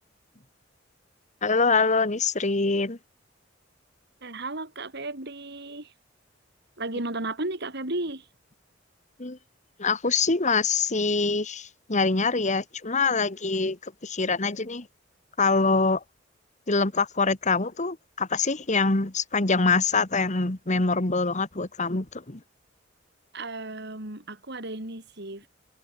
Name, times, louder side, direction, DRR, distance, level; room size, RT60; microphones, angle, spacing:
voice 1, 1.4-3.0 9.2-9.4 9.8-14.9 15.4-16.0 16.7-22.4, left 4 dB, 40° left, 1.7 m, -24 dB
voice 2, 4.2-5.9 6.8-8.3 23.3-25.5, right 2 dB, 60° right, 4.7 m, -34 dB
head